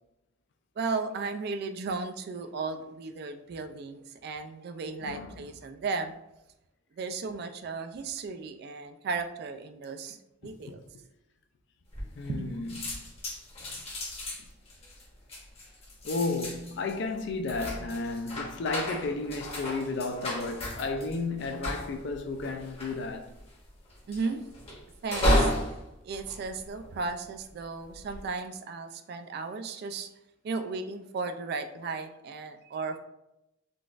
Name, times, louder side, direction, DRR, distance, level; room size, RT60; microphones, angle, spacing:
voice 1, 0.8-6.2 7.0-10.2 10.4-10.8 12.3-12.5 24.1-24.4 25.0-25.5 26.0-30.1 30.4-33.0, right 4 dB, 55° right, 0.3 m, -35 dB
voice 2, 5.0-5.4 10.6-10.7 12.2-12.7 16.0-23.3, left 3 dB, 60° left, 0.4 m, -33 dB
sound 1, 11.9-12.4 12.7-27.2 27.8-28.2, equal, 30° left, 0.9 m, -33 dB
3.8 x 2.4 x 2.4 m
head